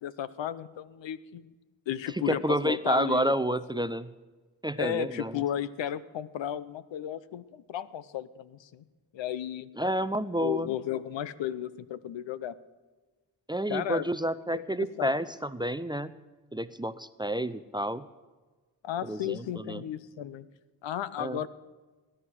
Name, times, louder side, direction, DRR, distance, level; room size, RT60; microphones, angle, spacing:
voice 1, 0.0-1.5 1.9-3.3 3.7-3.8 4.8-8.8 9.1-9.7 10.4-12.6 13.7-14.1 14.5-15.2 18.8-20.5 20.8-21.5, left 11 dB, 70° left, 16 dB, 0.8 m, -34 dB
voice 2, 2.1-4.1 4.6-5.4 9.8-10.7 13.5-16.1 16.5-18.1 19.0-19.8 21.2-21.4, right 1 dB, 10° right, 15 dB, 0.5 m, -30 dB
19.5 x 10.0 x 6.2 m, 1.3 s
supercardioid pair, 55°, 47 cm